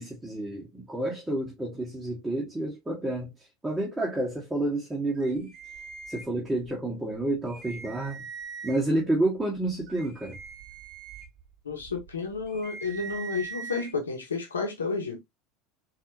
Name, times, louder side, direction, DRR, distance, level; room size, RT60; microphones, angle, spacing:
voice 1, 0.0-3.3 3.6-5.5 6.1-8.2 8.6-10.4, right 1 dB, 10° right, 1.4 m, -29 dB
sound 1, 5.2-6.7 7.1-7.2 7.5-9.0 9.5-13.9, right 5 dB, 40° right, 1.3 m, -42 dB
voice 2, 11.6-15.2, left 4 dB, 90° left, 0.9 m, -31 dB
4.2 x 2.8 x 2.6 m
hypercardioid pair, 80°, 0 cm